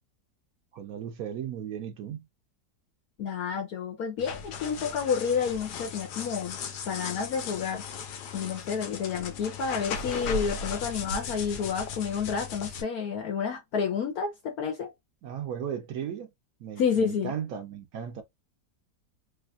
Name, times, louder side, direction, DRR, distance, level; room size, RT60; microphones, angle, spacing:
voice 1, 0.7-2.3 15.2-16.3 16.6-18.2, right 8 dB, 70° right, 1.0 m, -36 dB
voice 2, 3.2-6.6 6.9-7.8 8.3-14.9 16.8-17.4, left 6 dB, 70° left, 1.3 m, -30 dB
sound 1, 4.2-12.8, left 5 dB, 90° left, 1.3 m, -37 dB
3.3 x 3.1 x 2.3 m
omnidirectional pair, 1.7 m